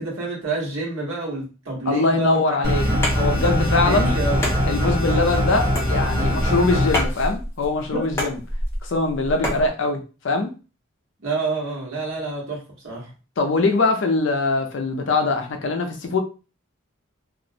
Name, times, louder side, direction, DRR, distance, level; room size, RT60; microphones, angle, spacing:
voice 1, 0.0-2.4 2.8-3.0 3.8-4.4 7.9-8.1 9.3-9.5 11.2-13.1, right 3 dB, 70° right, -2 dB, 1.1 m, -28 dB
voice 2, 1.9-2.9 3.1-4.1 4.7-8.4 8.8-10.0 10.2-10.5 13.4-16.2, left 3 dB, 60° left, 5 dB, 0.5 m, -22 dB
sound 1, 2.6-7.0, equal, 25° right, 1.0 m, -22 dB
sound 2, 2.9-9.7, left 1 dB, 10° left, 0.6 m, -29 dB
2.4 x 2.0 x 2.7 m, 0.33 s
head